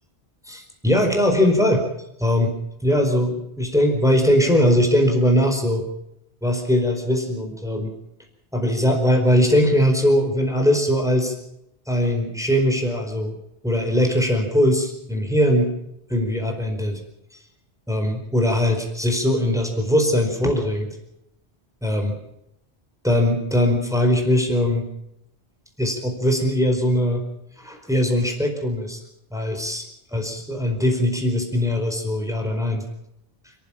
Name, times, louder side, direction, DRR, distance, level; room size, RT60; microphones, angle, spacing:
voice 1, 0.5-1.8 2.2-2.6 2.8-5.8 6.4-7.9 8.5-11.3 11.9-13.3 13.6-15.7 16.1-17.0 17.9-20.9 21.8-22.2 23.0-24.9 25.8-27.2 27.6-29.0 29.3-29.8 30.1-32.8, equal, 5° right, 2 dB, 4.7 m, -20 dB
29.0 x 15.0 x 7.2 m, 0.82 s
omnidirectional pair, 1.1 m